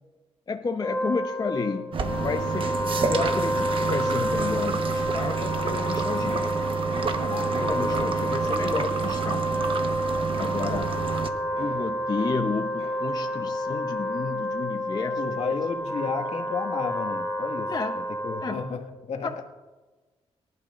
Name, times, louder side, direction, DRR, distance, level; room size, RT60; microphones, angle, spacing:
voice 1, 0.5-2.8 3.1-6.5 7.1-9.6 10.4-11.0 11.6-15.2 16.0-16.1 17.7-18.0 18.4-18.6 19.2-19.4, left 4 dB, 35° left, 5 dB, 0.8 m, -31 dB
Wind instrument woodwind instrument, 0.7-18.8, equal, 15° left, 4.5 m, -29 dB
sound 1, 1.9-11.3, right 5 dB, 50° right, 1.1 m, -29 dB
sound 2, 2.1-13.7 14.0-14.5, equal, 80° right, 4.4 m, -43 dB
voice 2, 15.2-17.7 17.9-19.4, left 5 dB, 70° left, 3 dB, 1.8 m, -33 dB
24.0 x 12.0 x 2.5 m, 1.3 s
cardioid pair, 95°, 11 cm